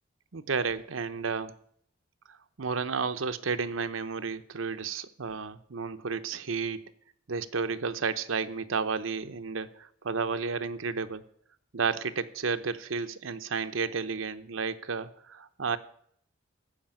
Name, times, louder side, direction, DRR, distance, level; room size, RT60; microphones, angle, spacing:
voice 1, 0.3-1.5 2.3-6.8 7.3-11.2 11.7-15.8, right 5 dB, 90° right, 10 dB, 0.8 m, -32 dB
15.0 x 5.0 x 8.9 m, 0.65 s
head